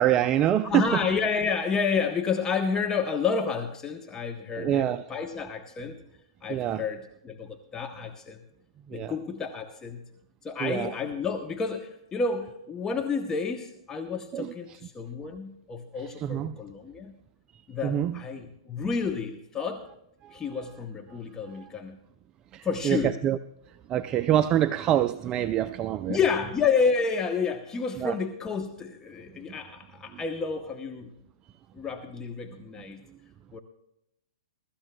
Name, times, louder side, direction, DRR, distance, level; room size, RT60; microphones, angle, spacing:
voice 1, 0.0-1.0 4.6-5.0 6.5-6.9 8.9-9.2 10.6-10.9 14.3-14.8 16.2-16.5 17.8-18.2 22.5-23.4 23.9-26.2 28.0-28.1, right 11 dB, 25° right, 10 dB, 0.4 m, -25 dB
voice 2, 0.6-6.0 6.4-8.4 8.9-10.1 10.4-17.1 17.7-19.8 20.3-22.0 22.6-23.2 26.1-31.1 31.7-33.0 33.5-33.6, left 5 dB, 20° left, 5 dB, 0.8 m, -30 dB
21.5 x 13.0 x 2.2 m, 0.82 s
hypercardioid pair, 125°, 3 cm